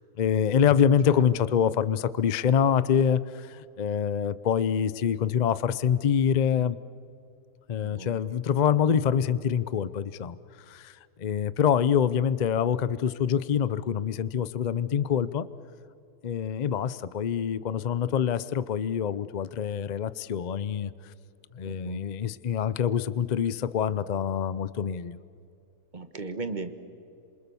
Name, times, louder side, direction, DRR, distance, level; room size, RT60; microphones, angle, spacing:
voice 1, 0.2-6.8 7.7-10.4 10.7-15.5 16.2-20.9 21.5-25.2, left 8 dB, 85° left, 16 dB, 0.3 m, -25 dB
voice 2, 7.8-8.2 21.6-22.0 25.9-26.7, right 3 dB, 30° right, 9 dB, 1.3 m, -37 dB
28.0 x 27.0 x 7.1 m, 2.5 s
omnidirectional pair, 1.7 m